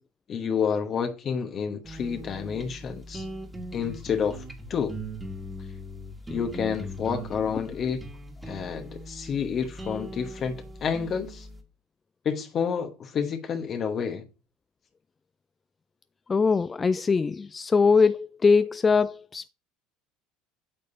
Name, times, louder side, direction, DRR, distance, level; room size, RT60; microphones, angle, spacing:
voice 1, 0.3-3.2 3.7-4.4 4.7-4.9 5.6-5.7 6.3-8.1 8.4-11.5 12.2-14.2, left 7 dB, 40° left, 1.0 m, -29 dB
sound 1, 1.8-11.6, right 1 dB, 15° right, 1.8 m, -40 dB
voice 2, 16.3-19.5, left 5 dB, 25° left, 0.3 m, -22 dB
8.7 x 6.5 x 2.6 m
hypercardioid pair, 75°, 0 cm